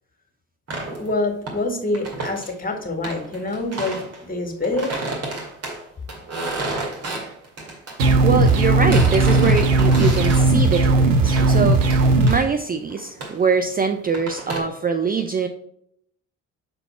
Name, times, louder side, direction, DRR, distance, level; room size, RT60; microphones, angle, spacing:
sound 1, 0.7-1.6 1.9-2.5 3.0-4.2 4.6-8.0 8.5-10.5 11.4-11.6 11.9-12.5 12.9-14.6, right 2 dB, 40° right, 2.3 m, -31 dB
voice 1, 1.0-5.1, left 2 dB, 20° left, 3 dB, 2.0 m, -26 dB
sound 2, 8.0-12.4, right 2 dB, 80° right, 0.8 m, -17 dB
voice 2, 8.2-15.5, right 5 dB, 25° right, 6 dB, 0.5 m, -23 dB
6.7 x 4.1 x 4.3 m, 0.72 s
hypercardioid pair, 50°, 38 cm